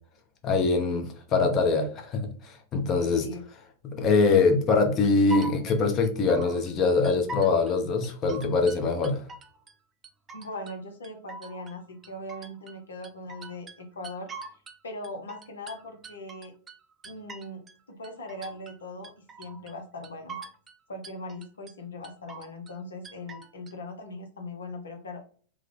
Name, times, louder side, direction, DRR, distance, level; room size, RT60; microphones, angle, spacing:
voice 1, 0.4-3.3 3.8-9.2, left 4 dB, 35° left, 0.7 m, -23 dB
sound 1, 5.0-6.7 7.0-7.7 8.0-9.8 10.0-10.8 11.0-12.8 13.0-14.8 15.0-17.8 18.0-18.8 19.0-19.8 20.0-20.8 21.0-21.7 22.0-22.8 23.0-23.7, right 1 dB, 25° right, 0.5 m, -43 dB
voice 2, 10.3-14.6 14.8-16.5 17.0-17.6 17.9-20.4 20.9-25.2, left 1 dB, 75° left, 0.7 m, -40 dB
3.5 x 2.2 x 3.2 m
figure-of-eight pair, 95°, 0 cm